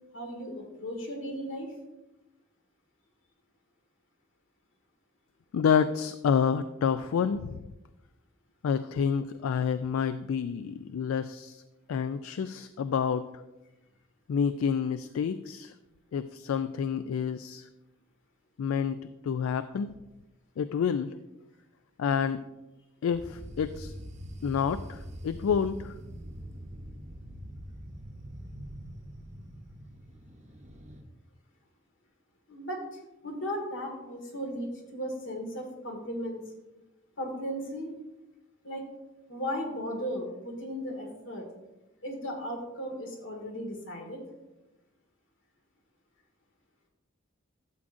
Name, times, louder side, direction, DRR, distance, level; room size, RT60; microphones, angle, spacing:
voice 1, 0.1-1.7 32.5-36.4 37.2-37.9 38.6-38.8 39.3-41.5 42.0-44.2, equal, 70° left, 2 dB, 1.8 m, -36 dB
voice 2, 5.5-7.6 8.6-11.6 11.9-13.3 14.3-15.7 16.1-17.7 18.6-19.9 20.6-21.2 22.0-22.4 23.0-23.9 24.4-25.9, left 7 dB, 85° left, 12 dB, 0.3 m, -28 dB
sound 1, 23.1-31.0, equal, 35° right, 0.8 m, -44 dB
12.0 x 7.4 x 2.5 m, 1.0 s
head